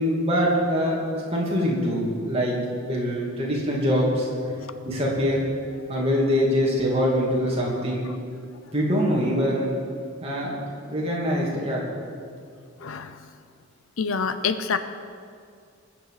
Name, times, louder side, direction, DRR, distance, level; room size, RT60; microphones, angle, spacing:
voice 1, 0.0-2.5 2.8-4.3 4.8-5.4 5.9-8.1 8.7-9.7 10.2-10.6 10.8-11.8, equal, 25° right, -4 dB, 2.7 m, -24 dB
voice 2, 12.8-13.3 14.0-14.8, left 5 dB, 75° left, 11 dB, 0.7 m, -27 dB
20.5 x 8.0 x 5.0 m, 2.3 s
head